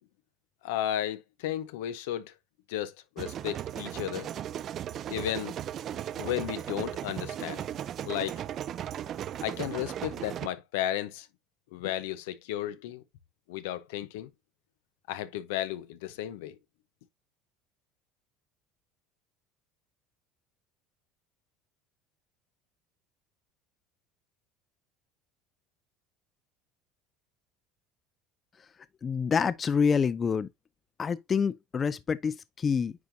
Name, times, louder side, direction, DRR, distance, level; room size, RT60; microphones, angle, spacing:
voice 1, 0.6-2.3 2.7-4.3 5.1-5.5 6.2-7.6 8.0-8.4 9.4-11.3 11.7-13.0 13.5-14.3 15.1-16.6, left 12 dB, 85° left, 0.9 m, -34 dB
sound 1, 3.2-10.5, right 10 dB, 45° right, 0.4 m, -36 dB
voice 2, 29.0-30.5 31.0-32.9, left 6 dB, 25° left, 0.4 m, -27 dB
9.5 x 3.9 x 2.7 m
supercardioid pair, 120°, 0 cm